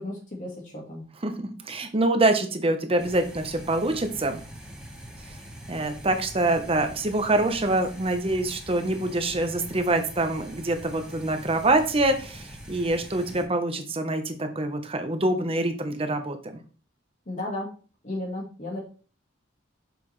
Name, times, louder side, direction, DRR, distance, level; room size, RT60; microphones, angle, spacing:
voice 1, 0.0-1.0 17.3-17.7 18.0-18.8, left 1 dB, 45° left, -2 dB, 1.7 m, -34 dB
voice 2, 1.2-4.4 5.7-16.6, right 2 dB, 30° right, 7 dB, 0.9 m, -25 dB
sound 1, 3.0-13.4, equal, 5° right, 1.3 m, -43 dB
6.8 x 5.9 x 3.2 m, 0.38 s
head